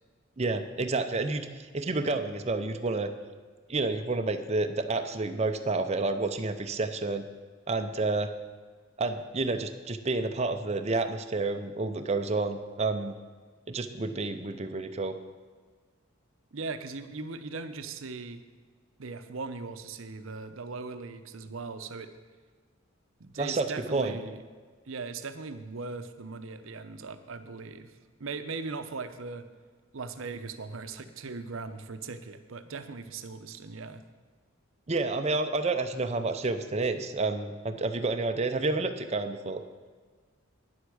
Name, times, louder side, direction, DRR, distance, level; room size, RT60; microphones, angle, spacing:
voice 1, 0.4-3.1 3.7-7.2 7.7-8.3 9.0-13.1 13.7-15.1 23.4-24.1 34.9-39.6, right 3 dB, 30° right, 7 dB, 0.6 m, -29 dB
voice 2, 16.5-18.4 19.0-22.1 23.2-24.4 24.9-29.5 29.9-34.0, right 4 dB, 65° right, 10 dB, 0.7 m, -39 dB
9.6 x 8.2 x 6.3 m, 1.5 s
head